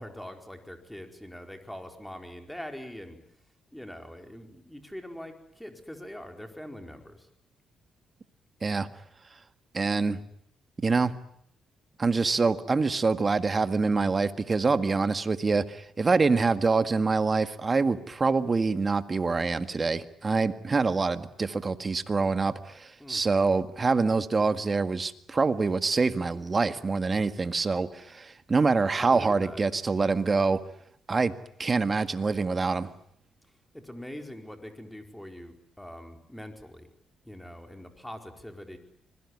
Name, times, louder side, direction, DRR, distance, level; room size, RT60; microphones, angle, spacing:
voice 1, 0.0-3.2 3.7-7.3 23.0-23.2 29.0-29.6 33.7-36.9 37.2-38.8, left 1 dB, 5° left, 5 dB, 4.6 m, -43 dB
voice 2, 9.7-10.2 10.8-11.1 12.0-30.6 31.1-31.3 31.6-32.9, right 4 dB, 30° right, 11 dB, 1.8 m, -25 dB
26.0 x 21.5 x 9.7 m, 0.72 s
cardioid pair, 90°, 0 cm